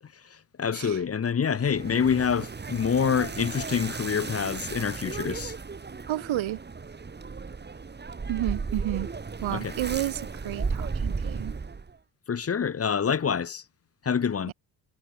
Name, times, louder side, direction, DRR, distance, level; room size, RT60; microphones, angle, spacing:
voice 1, 0.3-5.5 9.5-9.7 12.3-13.6 14.0-14.5, left 7 dB, 30° left, 1.6 m, -26 dB
sound 1, 1.6-12.0, right 4 dB, 20° right, 4.1 m, -35 dB
voice 2, 6.1-6.6 8.3-9.1 9.4-11.5 14.5-14.6, right 14 dB, 75° right, 4.8 m, -31 dB
cardioid pair, 145°, 47 cm